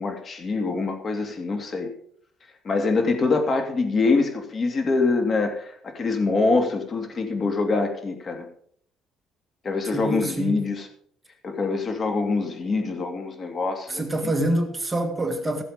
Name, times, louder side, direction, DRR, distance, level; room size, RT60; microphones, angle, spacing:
voice 1, 0.0-1.9 2.6-8.5 9.6-10.9 11.4-14.3, left 3 dB, 35° left, 2.7 m, -24 dB
voice 2, 9.9-10.6 13.9-15.6, right 1 dB, 10° right, 2.0 m, -26 dB
16.5 x 7.6 x 5.2 m
cardioid pair, 130°, 0 cm